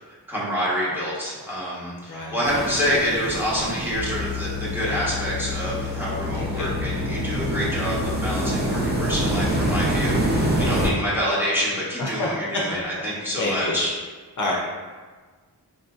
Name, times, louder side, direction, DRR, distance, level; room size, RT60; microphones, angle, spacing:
voice 1, 0.3-13.9, equal, 5° right, -8 dB, 1.0 m, -27 dB
voice 2, 2.1-2.4 3.6-3.8 4.8-5.1 6.3-6.7 12.0-12.3 13.4-13.8 14.4-14.5, left 2 dB, 50° left, -4 dB, 0.5 m, -28 dB
sound 1, 2.4-10.9, right 1 dB, 25° right, 0.5 m, -26 dB
sound 2, 3.9-10.8, left 10 dB, 75° right, 0.6 m, -33 dB
4.0 x 2.6 x 2.3 m, 1.4 s
wide cardioid pair, 100°, 41 cm